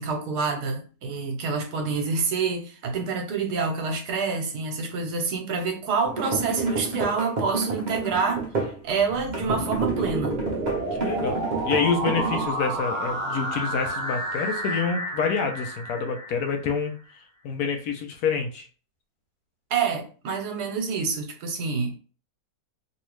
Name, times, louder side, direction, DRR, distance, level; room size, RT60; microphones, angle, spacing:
voice 1, 0.0-8.5 8.8-10.4 19.7-22.0, right 5 dB, 75° right, 1.3 m, -27 dB
sound 1, 6.0-8.8 9.3-12.4, right 3 dB, 55° right, 0.5 m, -30 dB
sound 2, 9.0-16.9, right 1 dB, 35° right, 0.8 m, -31 dB
voice 2, 11.0-16.9 17.4-18.7, left 5 dB, 75° left, 1.1 m, -27 dB
2.9 x 2.7 x 3.1 m
omnidirectional pair, 1.7 m